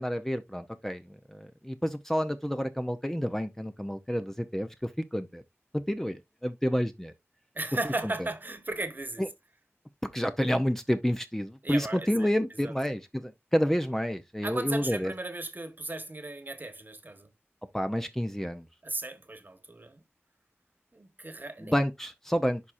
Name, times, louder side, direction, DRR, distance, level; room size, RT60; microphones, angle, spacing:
voice 1, 0.0-5.4 5.7-7.1 9.2-9.3 10.1-15.1 17.7-18.6 21.6-22.6, equal, 5° left, 0.6 m, -29 dB
voice 2, 7.5-9.3 11.6-12.3 12.6-12.7 14.4-17.3 18.8-20.0 20.9-21.7, right 2 dB, 40° right, 1.2 m, -36 dB
11.0 x 4.3 x 2.5 m
wide cardioid pair, 75°, 5 cm